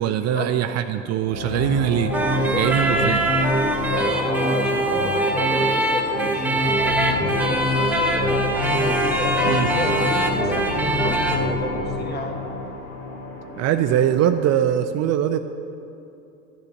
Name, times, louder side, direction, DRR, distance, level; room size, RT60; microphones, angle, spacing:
voice 1, 0.0-2.1 2.5-3.2 9.4-9.7 13.6-15.4, right 10 dB, 45° right, 9 dB, 0.5 m, -22 dB
sound 1, 1.2-14.6, left 3 dB, 70° left, 2.5 m, -29 dB
sound 2, 2.1-11.5, right 1 dB, 5° right, 1.2 m, -22 dB
voice 2, 2.4-3.0 3.8-8.6 9.1-12.4, left 1 dB, 25° left, 3 dB, 1.5 m, -31 dB
8.8 x 6.6 x 8.2 m, 2.8 s
hypercardioid pair, 85°, 37 cm